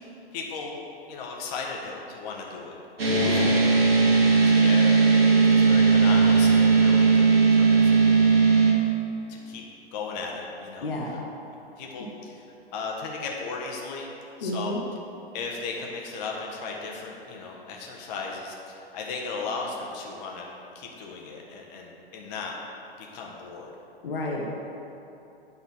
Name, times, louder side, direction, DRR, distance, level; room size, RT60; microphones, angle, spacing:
voice 1, 0.0-0.8 1.1-3.5 4.0-8.2 9.3-9.6 9.9-11.2 11.8-12.4 12.7-14.1 14.4-14.7 15.3-20.5 20.7-22.5 23.0-23.7, left 4 dB, 45° left, -1 dB, 1.3 m, -36 dB
sound 1, 3.0-8.7, right 4 dB, 75° right, 1.3 m, -18 dB
voice 2, 3.1-3.6 10.8-11.2 14.4-14.8 24.0-24.5, left 1 dB, 70° left, -2 dB, 1.0 m, -30 dB
8.7 x 3.9 x 5.6 m, 2.9 s
figure-of-eight pair, 105°, 30 cm